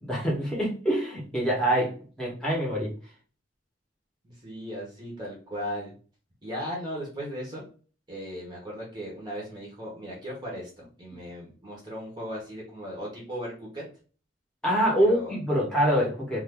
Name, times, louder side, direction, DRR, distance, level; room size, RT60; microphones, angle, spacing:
voice 1, 0.0-2.9 14.6-16.4, equal, 5° left, -5 dB, 1.2 m, -25 dB
voice 2, 4.2-5.9 6.4-7.6 8.1-13.8 15.1-15.3, equal, 25° right, -4 dB, 1.1 m, -37 dB
2.7 x 2.6 x 3.4 m, 0.39 s
head